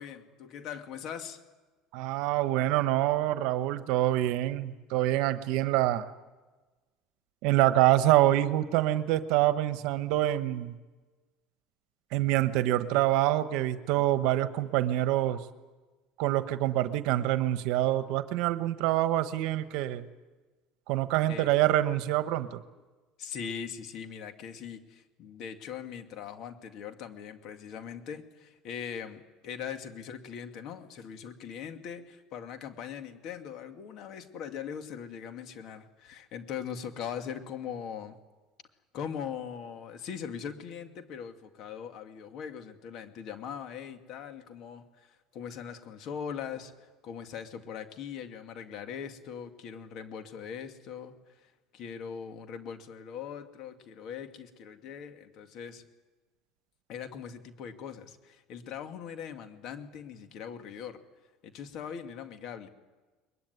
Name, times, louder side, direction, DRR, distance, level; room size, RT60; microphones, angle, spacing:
voice 1, 0.0-1.4 14.0-14.1 21.3-21.6 23.2-38.2 38.9-55.8 56.9-61.0 61.4-62.7, left 7 dB, 55° left, 6 dB, 2.4 m, -41 dB
voice 2, 1.9-6.1 7.4-10.7 12.1-15.4 16.2-20.1 20.9-22.6, right 14 dB, 70° right, 11 dB, 1.1 m, -26 dB
22.0 x 22.0 x 9.6 m, 1.2 s
supercardioid pair, 125°, 0 cm